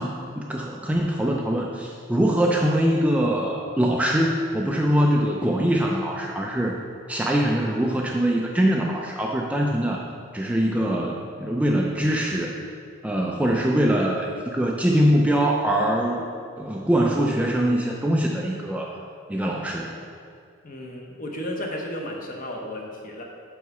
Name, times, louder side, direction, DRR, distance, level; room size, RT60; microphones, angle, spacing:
voice 1, 0.0-6.8 7.1-10.0 10.3-12.6 13.0-16.3 16.6-19.0 19.3-20.0, equal, 5° right, -1 dB, 0.3 m, -23 dB
voice 2, 20.6-23.2, left 1 dB, 40° left, 0 dB, 0.8 m, -33 dB
5.6 x 4.7 x 5.3 m, 2.3 s
head